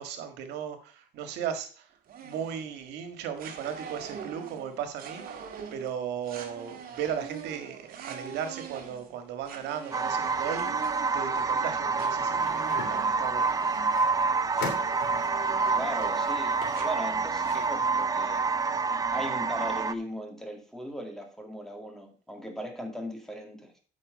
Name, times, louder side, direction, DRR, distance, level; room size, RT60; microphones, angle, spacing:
voice 1, 0.0-1.9 2.2-5.4 5.7-10.8 11.1-13.9, right 8 dB, 85° right, 8 dB, 1.8 m, -36 dB
sound 1, 2.1-3.0 3.4-16.9, right 7 dB, 60° right, 1.8 m, -44 dB
sound 2, 9.9-19.9, right 4 dB, 20° right, 0.5 m, -27 dB
sound 3, 11.9-17.7, left 5 dB, 80° left, 2.9 m, -43 dB
voice 2, 15.7-18.5 19.1-23.8, equal, 5° left, 3 dB, 2.3 m, -38 dB
8.7 x 6.3 x 5.2 m, 0.39 s
cardioid pair, 110°, 17 cm